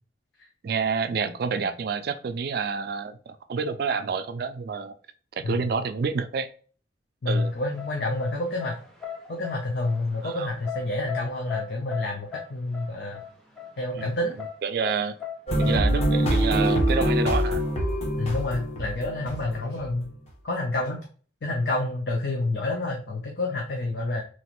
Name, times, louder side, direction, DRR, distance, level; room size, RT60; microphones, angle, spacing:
voice 1, 0.6-4.9 5.4-6.5 7.3-7.5 10.2-10.5 14.0-14.1 14.6-15.2 15.6-17.6, right 5 dB, 55° right, 10 dB, 0.3 m, -28 dB
voice 2, 7.2-8.7 9.3-13.2 13.8-14.4 18.2-20.1 20.4-21.1 21.4-24.2, left 2 dB, 60° left, 1 dB, 0.5 m, -28 dB
sound 1, 7.4-17.2, left 9 dB, ahead, 0.5 m, -39 dB
sound 2, 15.5-19.9, equal, 35° left, 0.8 m, -24 dB
3.0 x 2.5 x 2.9 m, 0.42 s
head